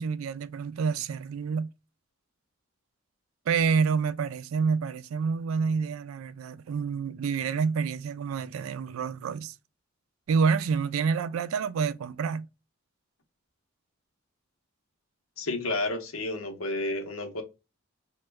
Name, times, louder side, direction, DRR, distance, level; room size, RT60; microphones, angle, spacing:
voice 1, 0.0-1.7 3.5-9.5 10.3-12.5, right 5 dB, 75° right, 0.3 m, -28 dB
voice 2, 15.4-17.4, left 2 dB, 85° left, 0.8 m, -31 dB
3.0 x 2.2 x 3.4 m
head